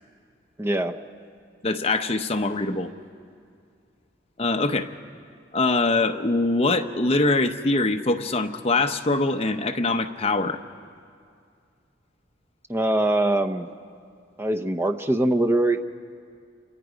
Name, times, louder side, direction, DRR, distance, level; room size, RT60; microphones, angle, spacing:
voice 1, 0.6-1.0 12.7-13.7 14.4-15.8, right 1 dB, 15° right, 6 dB, 0.7 m, -22 dB
voice 2, 1.6-2.9 4.4-4.9 5.5-10.6, left 2 dB, 30° left, 5 dB, 0.8 m, -23 dB
28.0 x 25.5 x 5.1 m, 2.3 s
head